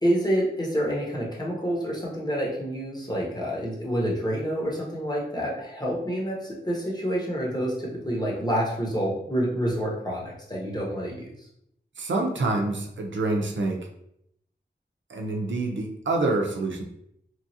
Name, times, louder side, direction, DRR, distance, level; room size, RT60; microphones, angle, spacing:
voice 1, 0.0-11.3, equal, 20° left, -3 dB, 0.9 m, -28 dB
voice 2, 12.0-13.9 15.1-16.8, right 2 dB, 80° right, 1 dB, 0.5 m, -27 dB
3.0 x 2.4 x 2.7 m, 0.75 s
wide cardioid pair, 65°, 19 cm